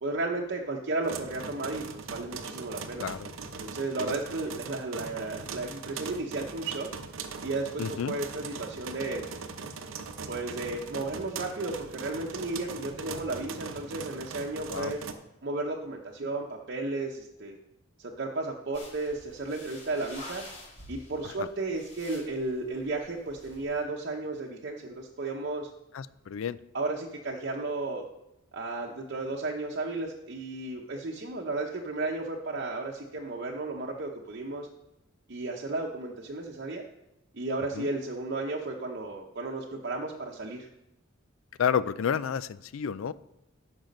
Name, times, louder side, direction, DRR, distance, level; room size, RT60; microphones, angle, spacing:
voice 1, 0.0-3.1 3.6-6.9 7.4-9.3 10.3-15.0 15.4-17.6 18.0-20.4 20.9-25.7 26.7-28.0 28.5-34.7 35.3-36.8 37.3-40.7, right 2 dB, 55° right, -1 dB, 0.8 m, -34 dB
sound 1, 1.0-15.1, right 4 dB, 85° right, 0.8 m, -40 dB
voice 2, 3.0-3.3 4.0-4.1 7.8-8.2 14.7-14.9 21.2-21.5 25.9-26.6 37.7-37.9 41.6-43.1, left 7 dB, 85° left, 17 dB, 0.4 m, -31 dB
sound 2, 18.7-23.8, left 1 dB, 40° left, 3.0 m, -48 dB
9.0 x 6.2 x 5.3 m, 0.88 s
head